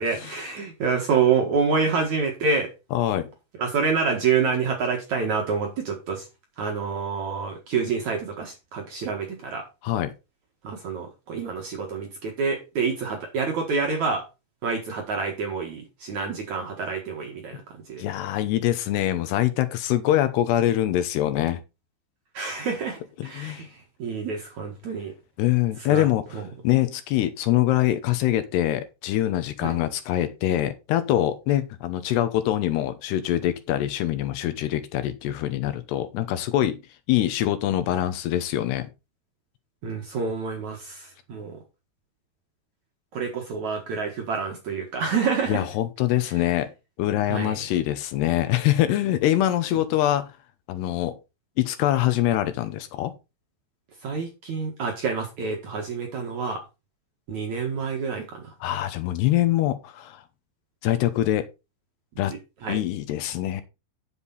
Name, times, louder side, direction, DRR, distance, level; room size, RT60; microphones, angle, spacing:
voice 1, 0.0-2.7 3.6-6.3 6.6-9.6 10.6-14.2 14.6-18.1 22.3-23.7 24.0-25.1 25.9-26.1 26.3-26.4 29.6-29.7 39.8-41.6 43.1-45.6 47.3-47.5 54.0-56.6 57.3-58.4 62.6-62.8, right 5 dB, 55° right, 2.3 m, -27 dB
voice 2, 2.9-3.3 9.8-10.1 18.0-21.6 23.2-23.7 25.4-36.8 37.1-38.9 45.5-46.7 47.0-50.4 50.7-51.2 51.6-53.1 58.6-60.2 60.8-61.5 62.2-62.3 62.7-63.6, left 13 dB, 75° left, 2.8 m, -24 dB
10.0 x 7.3 x 4.1 m
omnidirectional pair, 5.3 m